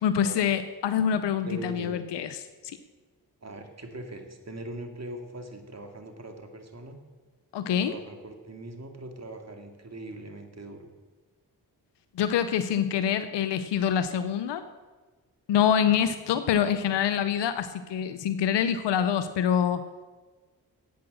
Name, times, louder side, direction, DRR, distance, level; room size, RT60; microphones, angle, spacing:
voice 1, 0.0-2.3 2.6-2.8 7.5-7.9 12.2-14.7 15.5-19.8, left 8 dB, 90° left, 11 dB, 0.7 m, -25 dB
voice 2, 1.5-2.0 3.4-7.0 7.7-10.9, right 1 dB, 40° right, 5 dB, 2.4 m, -41 dB
12.0 x 8.6 x 7.6 m, 1.3 s
supercardioid pair, 45°, 41 cm